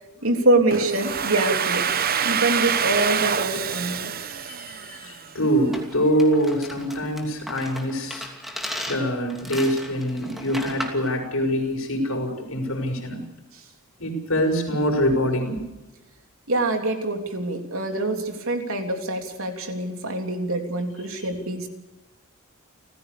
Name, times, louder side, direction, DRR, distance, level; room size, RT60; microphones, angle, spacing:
voice 1, 0.2-1.8 2.2-4.1 13.5-13.6 16.5-21.7, right 2 dB, 70° right, 4 dB, 3.3 m, -25 dB
Domestic sounds home sounds, 0.7-5.5, right 7 dB, 45° right, 1.0 m, -26 dB
voice 2, 4.4-8.3 8.9-13.2 14.0-15.7 21.2-21.3, equal, 70° left, 2 dB, 6.7 m, -24 dB
sound 1, 5.7-11.1, equal, ahead, 2.8 m, -36 dB
30.0 x 15.5 x 6.9 m, 1.0 s
head